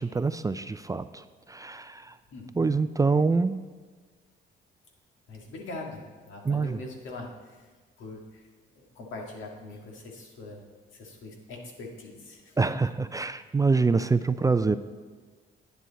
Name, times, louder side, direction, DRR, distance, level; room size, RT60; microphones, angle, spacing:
voice 1, 0.0-2.1 2.6-3.6 6.4-6.8 12.6-14.8, right 4 dB, 15° right, 12 dB, 0.4 m, -25 dB
voice 2, 5.3-7.7 8.0-8.4 8.7-10.6 10.9-12.7, left 2 dB, 80° left, 1 dB, 2.0 m, -42 dB
10.0 x 9.3 x 4.1 m, 1.4 s
cardioid pair, 90°, 20 cm